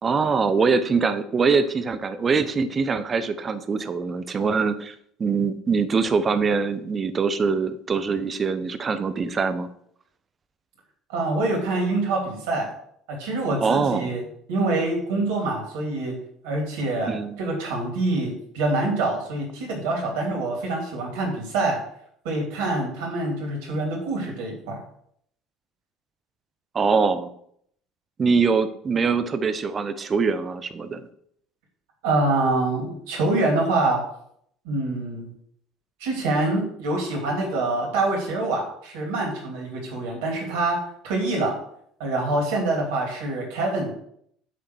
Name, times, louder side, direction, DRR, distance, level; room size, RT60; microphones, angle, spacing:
voice 1, 0.0-9.7 13.6-14.1 17.1-17.4 26.7-27.3 28.2-31.1, right 5 dB, 35° right, 12 dB, 0.9 m, -23 dB
voice 2, 11.1-12.7 13.1-14.2 14.5-16.1 16.4-21.8 22.2-24.8 32.0-34.0 34.6-35.3 36.0-40.8 41.0-41.6 42.0-43.9, right 2 dB, 70° right, 0 dB, 2.9 m, -25 dB
9.2 x 3.8 x 6.1 m, 0.67 s
figure-of-eight pair, 60°, 0 cm